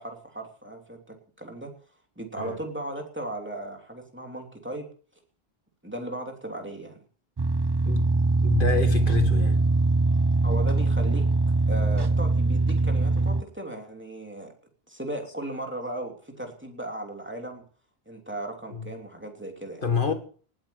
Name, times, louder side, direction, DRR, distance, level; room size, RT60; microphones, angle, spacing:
voice 1, 0.0-1.7 2.2-4.9 5.8-7.0 10.4-11.2 11.7-14.5 14.9-17.6 18.1-20.1, right 1 dB, 10° right, 3.1 m, -36 dB
sound 1, 7.4-13.4, right 3 dB, 30° right, 0.6 m, -22 dB
voice 2, 8.4-9.7 18.7-18.9 19.8-20.1, left 5 dB, 55° left, 2.1 m, -27 dB
19.0 x 8.8 x 7.0 m
omnidirectional pair, 1.0 m